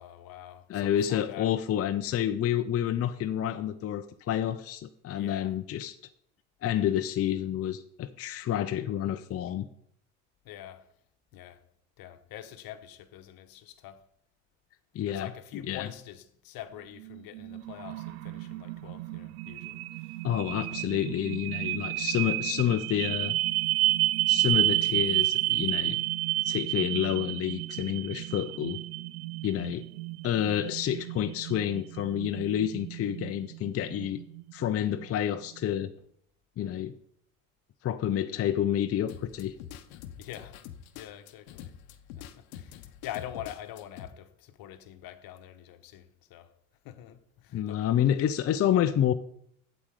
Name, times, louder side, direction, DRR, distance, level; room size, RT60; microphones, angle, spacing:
voice 1, 0.0-1.5 5.1-5.6 10.4-10.9 11.3-11.6 12.0-14.0 15.0-20.2 20.7-20.8 40.2-40.6 40.9-41.7 42.1-46.5 46.8-48.1, left 12 dB, 60° left, 1.1 m, -44 dB
voice 2, 0.7-6.0 6.6-9.7 14.9-15.3 15.7-15.9 20.2-23.4 24.3-26.0 26.4-28.8 29.4-29.9 30.2-34.2 34.5-35.9 36.6-36.9 37.8-39.5 47.5-49.1, left 10 dB, 35° left, 0.6 m, -29 dB
sound 1, 17.0-35.0, right 18 dB, 80° right, 0.5 m, -31 dB
sound 2, 39.1-44.1, left 10 dB, 80° left, 0.9 m, -45 dB
8.2 x 8.0 x 4.8 m
hypercardioid pair, 75°, 41 cm